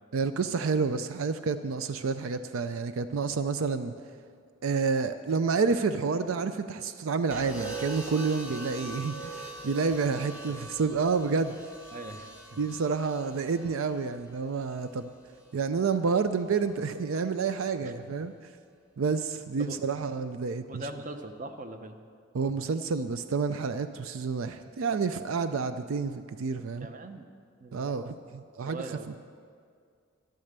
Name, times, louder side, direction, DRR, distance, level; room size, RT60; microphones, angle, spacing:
voice 1, 0.1-3.9 4.6-11.6 12.6-15.1 15.5-18.3 19.0-20.8 22.3-26.9 27.7-28.8, right 5 dB, 75° right, 10 dB, 0.4 m, -29 dB
sound 1, 7.3-15.5 16.7-17.1, right 2 dB, 5° right, 1.7 m, -43 dB
voice 2, 11.9-12.6 17.8-17.9 19.6-19.8 20.7-22.0 26.8-27.3 27.6-28.1 28.6-29.1, right 2 dB, 35° right, 7 dB, 0.8 m, -41 dB
12.0 x 11.5 x 6.7 m, 2.2 s
head